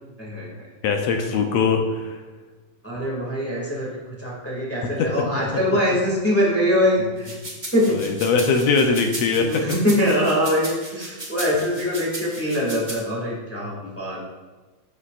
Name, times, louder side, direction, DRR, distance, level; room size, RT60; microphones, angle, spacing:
voice 1, 0.2-0.7 2.8-7.3 7.7-8.2 9.2-14.2, equal, 5° left, -4 dB, 1.4 m, -23 dB
voice 2, 0.8-2.2 5.0-5.3 7.9-9.6 13.8-14.0, left 4 dB, 75° left, 4 dB, 1.7 m, -21 dB
sound 1, 7.2-13.0, right 2 dB, 25° right, 0.9 m, -35 dB
13.0 x 6.6 x 2.5 m, 1.2 s
omnidirectional pair, 3.5 m